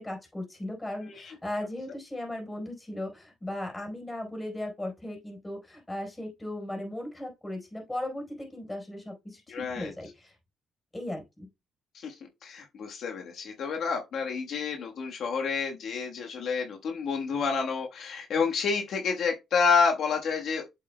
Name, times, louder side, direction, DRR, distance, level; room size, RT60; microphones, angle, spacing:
voice 1, 0.0-10.3 10.9-11.5, left 1 dB, 15° left, 4.3 m, -37 dB
voice 2, 9.5-9.9 11.9-12.1 12.4-20.6, left 5 dB, 70° left, 1.3 m, -29 dB
8.0 x 7.3 x 2.2 m
cardioid pair, 90°, 0 cm